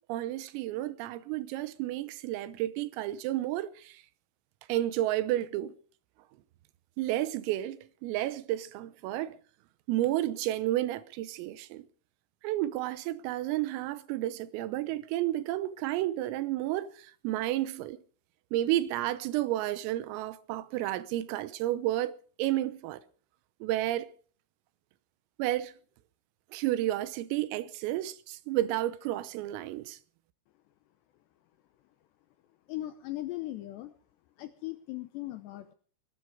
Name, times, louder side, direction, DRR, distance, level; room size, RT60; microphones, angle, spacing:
voice 1, 0.1-4.0 4.7-5.8 7.0-9.4 9.9-11.9 12.4-18.0 18.5-23.0 23.6-24.1 25.4-25.7 26.5-30.0, right 14 dB, 85° right, 3.7 m, -31 dB
voice 2, 32.7-33.9 34.4-35.7, left 16 dB, 80° left, 2.5 m, -38 dB
21.0 x 13.0 x 4.9 m
omnidirectional pair, 5.9 m